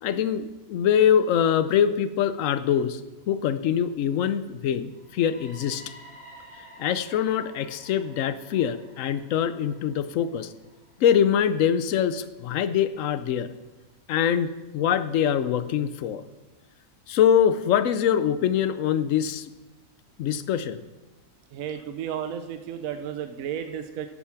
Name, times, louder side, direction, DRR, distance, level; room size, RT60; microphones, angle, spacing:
voice 1, 0.0-3.0 3.3-5.8 6.8-10.5 11.0-13.5 14.1-16.2 17.1-19.5 20.2-20.8, left 9 dB, 75° left, 13 dB, 1.0 m, -24 dB
sound 1, 4.9-12.8, equal, 10° right, 2.8 m, -52 dB
voice 2, 21.5-24.1, right 9 dB, 80° right, 9 dB, 1.0 m, -33 dB
10.0 x 8.4 x 5.8 m, 1.1 s
omnidirectional pair, 1.4 m